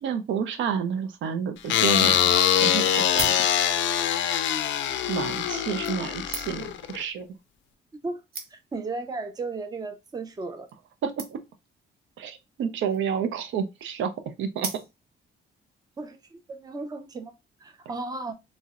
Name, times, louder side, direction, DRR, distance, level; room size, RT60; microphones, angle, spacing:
voice 1, 0.0-3.4 5.1-7.3 11.0-11.4 12.2-14.1 14.4-14.7, right 7 dB, 70° right, 0.5 m, -30 dB
sound 1, 1.7-7.0, left 10 dB, 75° left, 0.4 m, -23 dB
sound 2, 3.0-4.0 4.9-5.1 5.8-6.8 7.7-7.8 8.0-8.1 8.3-8.9 9.6-9.8 10.1-10.2 10.4-10.5 10.7-10.8 11.2-11.7 12.7-13.2 14.6-15.3 15.8-15.9, right 3 dB, 50° right, 0.9 m, -38 dB
voice 2, 8.5-10.7 16.0-16.2 16.5-17.3 17.6-18.3, right 3 dB, 20° right, 0.4 m, -34 dB
3.8 x 2.1 x 2.4 m
cardioid pair, 90°, 20 cm